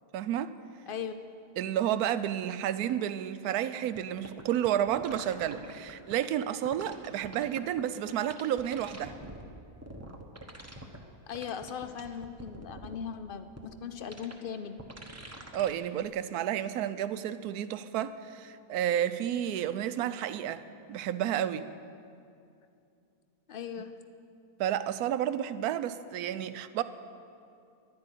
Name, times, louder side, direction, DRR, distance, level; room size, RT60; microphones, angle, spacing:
voice 1, 0.1-0.5 1.6-9.1 15.5-21.7 24.6-26.8, right 10 dB, 75° right, 13 dB, 1.1 m, -31 dB
voice 2, 0.9-1.2 11.3-14.9 23.5-24.1, left 7 dB, 75° left, 10 dB, 0.5 m, -39 dB
sound 1, 3.9-4.0 4.2-6.1 6.6-7.8 8.1-9.4 9.8-11.0 11.3-13.0 13.6-13.7 14.1-14.3 14.8-15.7 16.0-16.1, right 1 dB, 10° right, 0.8 m, -45 dB
11.5 x 10.5 x 9.8 m, 2.5 s
omnidirectional pair, 1.7 m